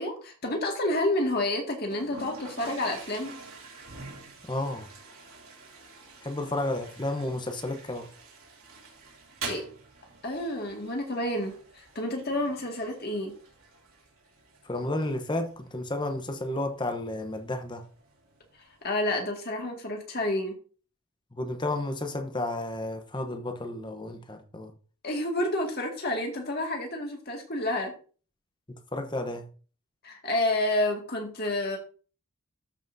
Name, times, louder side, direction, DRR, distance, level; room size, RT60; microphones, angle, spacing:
voice 1, 0.0-3.3 9.4-9.6 10.2-13.3 18.8-20.6 25.0-27.9 30.0-31.8, left 1 dB, 45° left, 2.1 m, -29 dB
Toilet flush, 1.8-18.8, right 4 dB, 70° right, 2.8 m, -47 dB
voice 2, 4.5-4.9 6.2-8.1 14.6-17.8 21.3-24.7 28.9-29.5, left 1 dB, 20° left, 0.9 m, -32 dB
13.0 x 5.6 x 2.7 m
head